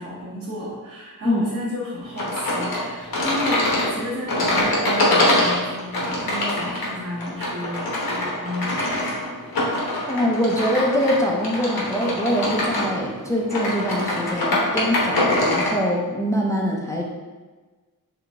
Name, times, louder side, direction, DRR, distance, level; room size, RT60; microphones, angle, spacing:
voice 1, 0.0-9.1, left 1 dB, 35° right, -8 dB, 0.8 m, -32 dB
sound 1, 2.2-15.8, left 1 dB, 70° left, 1.1 m, -24 dB
voice 2, 10.1-17.0, equal, 10° left, -2 dB, 0.4 m, -23 dB
3.9 x 3.2 x 3.5 m, 1.3 s
wide cardioid pair, 140°, 37 cm